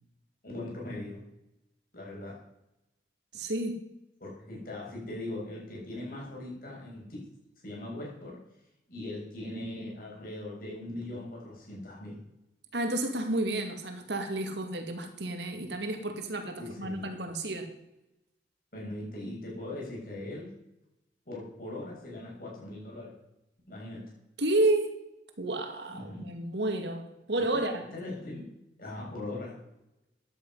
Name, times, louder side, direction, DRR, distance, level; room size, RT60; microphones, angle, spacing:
voice 1, 0.4-1.2 1.9-2.4 4.2-7.3 7.6-8.4 8.9-12.2 16.6-17.1 18.7-20.5 21.3-23.2 23.7-24.1 25.9-26.3 27.4-27.6 27.9-28.5 28.8-29.6, left 1 dB, 50° left, -3 dB, 7.0 m, -40 dB
voice 2, 3.3-3.8 12.7-17.7 24.4-24.9 25.4-27.9, right 2 dB, 75° right, 5 dB, 2.2 m, -31 dB
15.5 x 10.5 x 5.6 m, 0.90 s
head